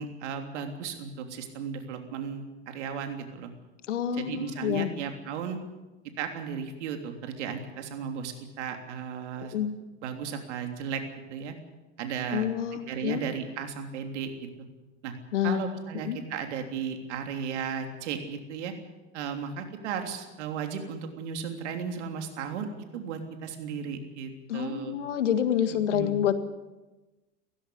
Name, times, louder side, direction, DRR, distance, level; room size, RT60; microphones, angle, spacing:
voice 1, 0.0-3.5 4.1-5.6 6.2-9.6 10.0-11.0 11.3-11.5 12.0-12.5 12.9-14.3 15.0-15.1 15.4-18.7 19.1-22.7 22.9-25.0 25.9-26.2, right 7 dB, 75° right, 5 dB, 3.4 m, -35 dB
voice 2, 3.9-4.9 9.5-9.7 12.3-13.2 15.3-15.7 16.1-16.2 24.5-26.3, left 10 dB, 90° left, 11 dB, 1.8 m, -27 dB
18.0 x 15.5 x 9.9 m, 1.1 s
hypercardioid pair, 100°, 35 cm